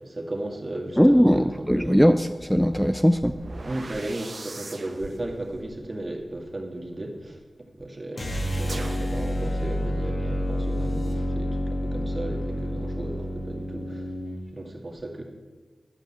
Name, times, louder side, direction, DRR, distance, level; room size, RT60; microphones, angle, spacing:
voice 1, 0.0-2.0 3.6-7.4 7.7-14.1 14.5-15.2, right 1 dB, 40° right, 2 dB, 2.1 m, -35 dB
voice 2, 1.0-3.4, equal, ahead, 10 dB, 0.4 m, -19 dB
sound 1, 3.1-7.2 8.6-10.1, right 2 dB, 55° right, 0.9 m, -41 dB
sound 2, 8.1-14.4, equal, 50° left, 2.5 m, -29 dB
11.5 x 5.4 x 8.7 m, 1.3 s
cardioid pair, 45°, 0 cm